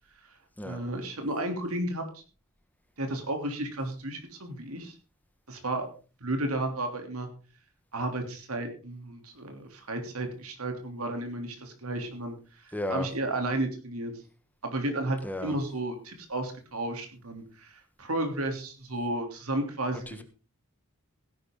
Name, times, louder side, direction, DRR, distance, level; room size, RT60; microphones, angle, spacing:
voice 1, 0.6-2.2 3.0-4.9 5.5-5.9 6.2-7.3 7.9-14.1 14.6-20.2, right 1 dB, 80° right, 5 dB, 3.3 m, -33 dB
voice 2, 12.7-13.1 15.2-15.5 20.1-20.2, left 1 dB, 10° left, 8 dB, 1.5 m, -33 dB
16.5 x 11.0 x 3.9 m, 0.36 s
head